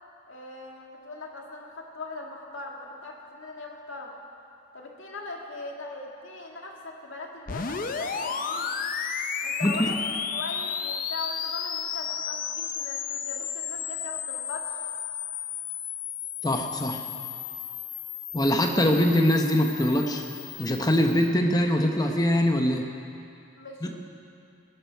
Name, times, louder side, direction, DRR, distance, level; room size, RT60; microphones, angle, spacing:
voice 1, 0.3-4.1 4.7-8.8 9.4-14.7 23.6-23.9, left 2 dB, 70° left, 0 dB, 1.9 m, -40 dB
sound 1, 7.5-21.3, left 7 dB, 40° left, 0.6 m, -33 dB
voice 2, 9.6-9.9 16.4-17.0 18.3-20.2 20.6-22.8 23.8-23.9, left 1 dB, 20° left, 3 dB, 0.9 m, -23 dB
18.5 x 11.5 x 4.6 m, 2.5 s
head